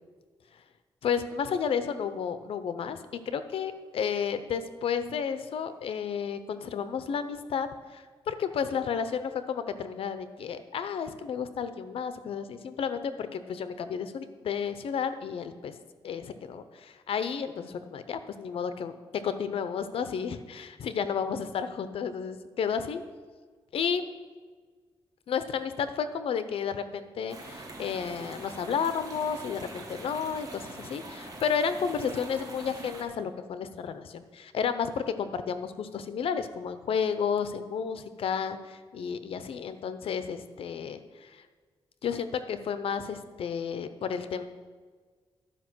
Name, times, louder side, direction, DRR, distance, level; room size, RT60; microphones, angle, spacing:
voice 1, 1.0-13.0 13.3-15.7 16.0-23.0 23.7-24.1 25.3-41.4 42.0-44.5, left 7 dB, 80° left, 11 dB, 0.6 m, -32 dB
sound 1, 27.3-33.0, right 2 dB, 40° right, 1.5 m, -43 dB
11.5 x 5.2 x 6.1 m, 1.5 s
wide cardioid pair, 120°, 9 cm